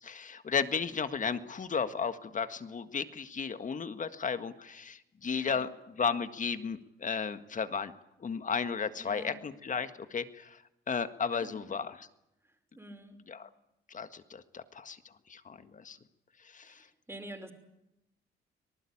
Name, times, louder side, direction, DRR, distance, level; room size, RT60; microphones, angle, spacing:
voice 1, 0.0-5.7 6.0-7.9 8.2-10.6 10.9-12.1 13.3-13.5 13.9-15.0 15.3-16.0 16.4-16.9, left 6 dB, 40° left, 10 dB, 1.7 m, -34 dB
voice 2, 5.2-5.5 9.0-9.4 11.4-11.5 12.7-13.2 16.6-17.5, right 1 dB, 10° right, 6 dB, 5.4 m, -47 dB
26.0 x 19.5 x 8.7 m, 0.86 s
cardioid pair, 90°, 20 cm